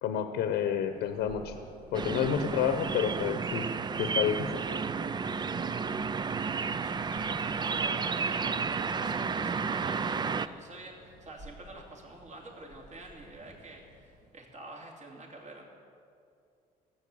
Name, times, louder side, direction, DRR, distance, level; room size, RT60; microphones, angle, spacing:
voice 1, 0.0-1.5 1.9-3.7 4.0-4.6, left 8 dB, 80° left, 7 dB, 0.9 m, -29 dB
Thunder, 0.8-14.4, equal, 75° right, 4.5 m, -53 dB
sound 1, 1.9-10.5, right 5 dB, 25° right, 0.5 m, -32 dB
voice 2, 6.2-15.6, right 2 dB, 45° right, 0 dB, 2.9 m, -47 dB
15.5 x 8.0 x 8.5 m, 2.5 s
cardioid pair, 110°, 17 cm